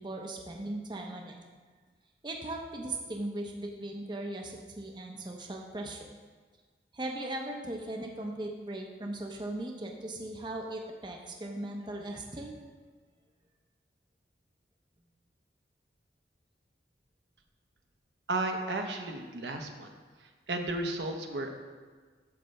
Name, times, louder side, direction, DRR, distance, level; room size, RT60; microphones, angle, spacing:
voice 1, 0.0-1.4 2.2-6.1 6.9-12.5, right 1 dB, 25° right, 1 dB, 0.6 m, -38 dB
voice 2, 18.3-19.9 20.5-21.5, right 2 dB, 75° right, 4 dB, 0.9 m, -33 dB
9.5 x 3.3 x 6.6 m, 1.5 s
head